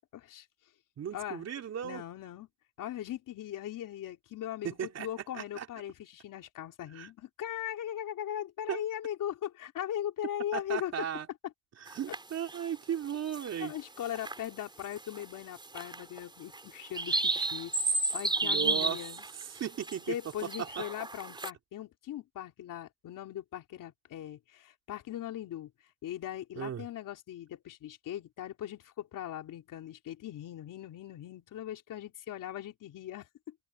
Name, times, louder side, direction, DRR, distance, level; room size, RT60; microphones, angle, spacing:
voice 1, 0.1-0.5 1.1-1.5 1.8-2.5 2.8-11.1 11.4-11.5 12.1-12.2 13.6-17.7 18.1-19.3 20.1-25.7 26.0-33.6, left 11 dB, 55° left, 3.5 m, -39 dB
voice 2, 1.0-2.0 4.6-5.1 5.3-5.7 6.9-7.1 8.7-8.8 10.5-11.3 11.8-13.7 18.4-19.0 19.5-20.1 26.6-26.8, right 9 dB, 40° right, 3.2 m, -36 dB
sound 1, 11.9-12.6 13.1-13.7 14.0-14.5 14.8-15.2 15.6-16.2 16.5-21.5, right 3 dB, 10° right, 4.3 m, -33 dB
cardioid pair, 145°, 38 cm